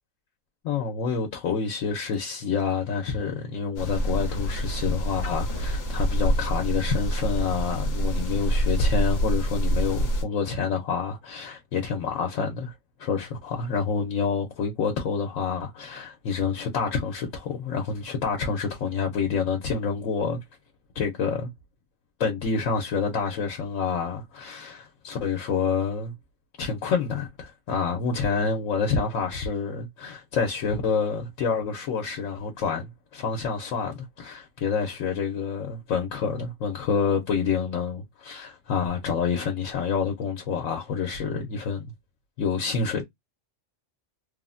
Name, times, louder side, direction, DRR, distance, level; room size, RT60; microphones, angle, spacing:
voice 1, 0.6-12.7 13.0-20.4 20.9-21.5 22.2-26.1 26.6-41.9 42.4-43.0, left 5 dB, 85° left, 1.0 m, -28 dB
sound 1, 3.8-10.2, right 1 dB, 60° left, 1.0 m, -26 dB
3.2 x 2.0 x 2.4 m
omnidirectional pair, 1.3 m